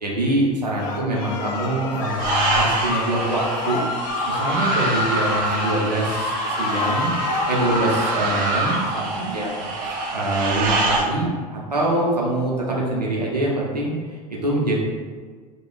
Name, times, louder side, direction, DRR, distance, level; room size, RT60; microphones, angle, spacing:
voice 1, 0.0-3.8 4.3-7.1 7.5-9.5 10.1-14.8, right 1 dB, 85° right, -4 dB, 0.8 m, -24 dB
sound 1, 0.8-8.2, left 3 dB, 50° left, 0.6 m, -27 dB
sound 2, 2.1-11.0, right 3 dB, 40° right, 0.6 m, -25 dB
4.9 x 2.3 x 2.3 m, 1.5 s
figure-of-eight pair, 75°, 20 cm